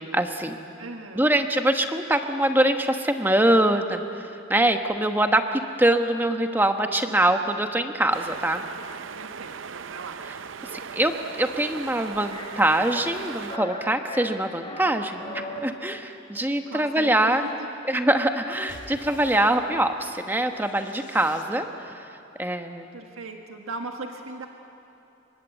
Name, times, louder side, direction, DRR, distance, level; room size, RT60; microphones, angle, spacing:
voice 1, 0.1-0.6 1.1-8.6 10.7-17.4 17.9-22.9, right 1 dB, 10° right, 6 dB, 1.2 m, -24 dB
voice 2, 0.8-1.3 9.1-10.2 16.6-17.7 22.9-24.5, right 3 dB, 90° right, 4 dB, 1.6 m, -38 dB
River Rushing Medium Size S, 8.1-13.6, right 6 dB, 70° right, 0.6 m, -38 dB
sound 1, 12.3-12.5 12.9-13.2 13.5-13.8 14.1-14.9 15.2-15.6, left 1 dB, 25° left, 4.3 m, -37 dB
sound 2, 18.7-21.9, left 2 dB, 65° left, 2.6 m, -49 dB
28.0 x 23.5 x 8.3 m, 2.9 s
head